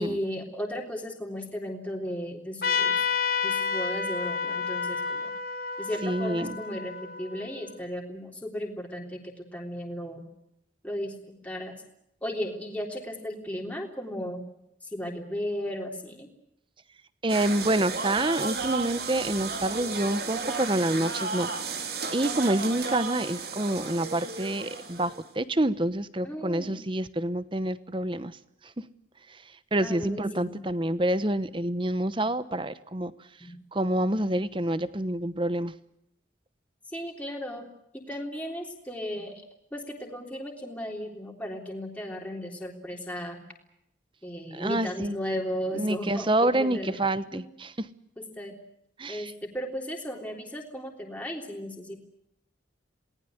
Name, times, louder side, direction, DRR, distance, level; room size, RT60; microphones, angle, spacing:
voice 1, 0.0-2.9 3.4-5.3 5.8-10.3 10.8-11.1 11.4-11.7 12.2-14.4 14.8-16.3 26.2-26.8 29.8-30.6 33.4-33.6 36.9-37.7 37.9-39.4 39.7-43.4 44.2-47.0 47.3-47.4 48.2-48.6 49.1-52.0, equal, 10° left, 0 dB, 3.5 m, -35 dB
Trumpet, 2.6-7.7, left 5 dB, 50° left, 2.7 m, -30 dB
voice 2, 6.0-6.6 17.2-21.5 22.1-28.4 28.6-28.7 29.3-29.4 29.7-33.1 33.7-35.7 44.5-45.2 45.7-47.9 49.0-49.3, right 1 dB, 25° right, 14 dB, 1.0 m, -27 dB
sound 1, 17.3-25.2, right 4 dB, 55° right, 3.3 m, -33 dB
28.0 x 19.0 x 8.0 m, 0.79 s
head